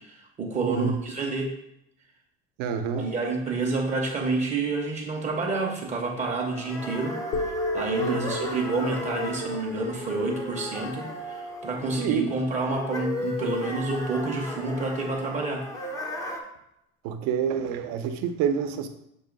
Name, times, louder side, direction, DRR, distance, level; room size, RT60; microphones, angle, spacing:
voice 1, 0.0-1.5 2.9-7.2 7.5-15.7, right 3 dB, 25° right, 0 dB, 0.7 m, -29 dB
voice 2, 0.6-1.0 2.6-3.1 8.0-8.3 12.0-12.3 17.0-18.9, right 7 dB, 70° right, 7 dB, 0.7 m, -27 dB
sound 1, 6.1-16.4, left 2 dB, 10° left, 0.5 m, -36 dB
sound 2, 7.3-11.4, left 1 dB, 65° left, 0.9 m, -34 dB
6.9 x 2.7 x 5.2 m, 0.79 s
cardioid pair, 180°, 29 cm